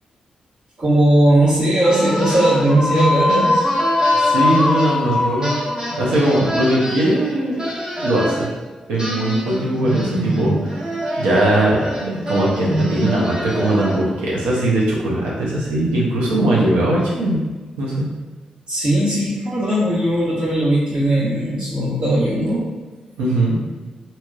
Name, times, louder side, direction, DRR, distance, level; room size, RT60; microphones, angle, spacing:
voice 1, 0.8-3.6 18.7-22.7, right 1 dB, 55° right, -12 dB, 1.4 m, -18 dB
sound 1, 1.8-7.3, left 2 dB, 25° left, 0.3 m, -21 dB
sound 2, 1.9-5.1 5.4-8.5 9.0-14.2, right 1 dB, 25° right, 1.0 m, -25 dB
voice 2, 4.1-5.5 6.0-7.6 8.0-8.5 8.9-10.8 11.1-17.4 17.8-18.1 23.2-23.6, right 1 dB, 90° right, -5 dB, 0.7 m, -19 dB
3.0 x 2.8 x 2.4 m, 1.3 s
supercardioid pair, 40°, 3 cm